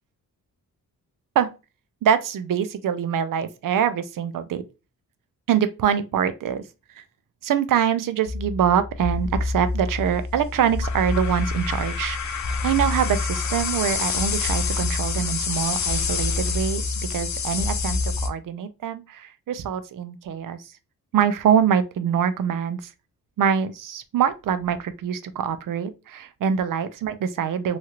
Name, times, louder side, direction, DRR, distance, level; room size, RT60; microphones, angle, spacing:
voice 1, 2.0-4.6 5.5-7.0 7.4-20.7 21.1-22.9 23.4-27.8, right 8 dB, 65° right, 0.5 m, -24 dB
sound 1, 8.3-18.3, left 4 dB, 55° left, 0.5 m, -26 dB
2.9 x 2.4 x 2.9 m
wide cardioid pair, 105°, 35 cm